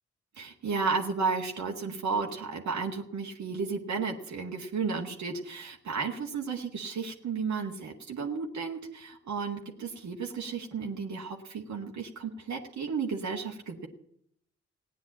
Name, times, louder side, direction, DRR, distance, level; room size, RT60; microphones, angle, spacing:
voice 1, 0.4-13.9, right 5 dB, 70° right, 1 dB, 2.1 m, -33 dB
16.5 x 9.4 x 8.7 m, 0.73 s
supercardioid pair, 40°, 30 cm